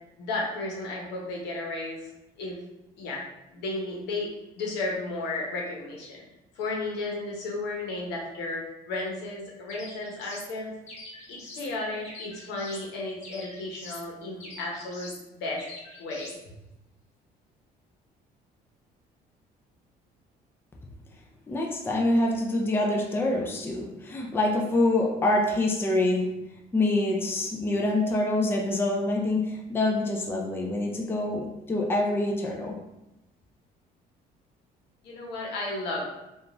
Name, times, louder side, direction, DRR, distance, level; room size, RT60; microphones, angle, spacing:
voice 1, 0.2-2.1 2.4-2.6 3.0-3.2 3.5-4.3 4.6-6.2 6.6-10.7 11.3-15.6 16.0-16.3 35.0-36.1, left 2 dB, 85° left, -2 dB, 0.9 m, -33 dB
sound 1, 9.7-10.5 10.9-11.7 12.0-12.9 13.2-14.1 14.4-15.2 15.6-16.4, left 2 dB, 45° left, 1.0 m, -44 dB
voice 2, 21.5-26.4 26.7-32.8, left 2 dB, 15° left, 0 dB, 0.4 m, -26 dB
2.9 x 2.4 x 2.5 m, 0.91 s
cardioid pair, 110°, 17 cm